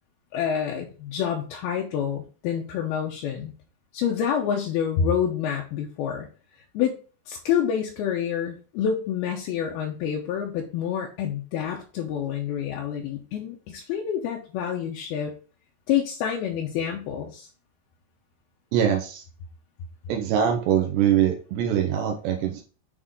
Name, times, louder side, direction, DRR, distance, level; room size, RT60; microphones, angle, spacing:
voice 1, 0.3-3.5 3.9-6.3 6.7-7.0 7.3-15.3 15.9-17.5, left 8 dB, 80° left, -1 dB, 2.5 m, -27 dB
voice 2, 18.7-19.2 20.1-22.6, right 9 dB, 85° right, 3 dB, 3.0 m, -23 dB
8.1 x 3.6 x 3.7 m, 0.38 s
omnidirectional pair, 4.8 m